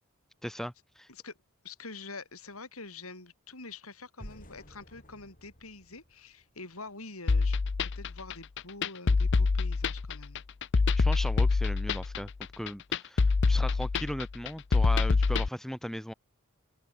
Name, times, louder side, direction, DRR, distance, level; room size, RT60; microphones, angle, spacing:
voice 1, 0.4-1.1 10.9-12.3 12.6-16.1, equal, ahead, 1.2 m, -37 dB
voice 2, 1.6-7.6 8.0-10.4, left 3 dB, 80° left, 7.0 m, -46 dB
sound 1, 4.2-7.2, equal, 40° left, 6.8 m, -52 dB
sound 2, 7.3-15.5, left 4 dB, 55° left, 0.6 m, -26 dB
open air
head